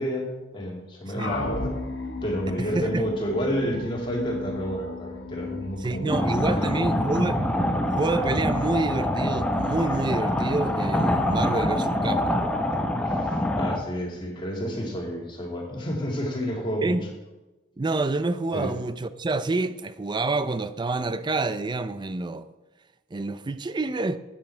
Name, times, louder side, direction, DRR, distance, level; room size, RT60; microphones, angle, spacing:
voice 1, 0.0-1.8 2.2-6.9 13.0-17.0 18.5-18.7, equal, 30° left, 2.1 m, -30 dB
sound 1, 1.2-14.1, left 2 dB, 75° left, 1.4 m, -37 dB
voice 2, 2.6-3.0 5.8-7.4 7.9-12.5 16.8-17.0 17.8-22.5 23.1-24.2, right 3 dB, 25° right, 0.4 m, -27 dB
sound 2, 6.1-13.8, left 1 dB, 5° left, 0.8 m, -25 dB
9.3 x 8.6 x 4.4 m
head